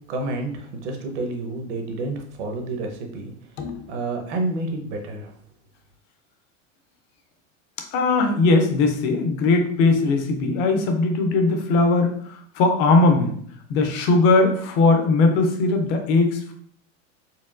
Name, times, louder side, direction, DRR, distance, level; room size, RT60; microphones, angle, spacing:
voice 1, 0.1-3.3 3.9-5.3, right 2 dB, 60° right, 3 dB, 1.0 m, -29 dB
voice 2, 7.9-13.4 13.7-16.5, left 3 dB, 30° left, 4 dB, 0.4 m, -19 dB
4.4 x 3.4 x 2.5 m, 0.63 s
supercardioid pair, 155°, 40 cm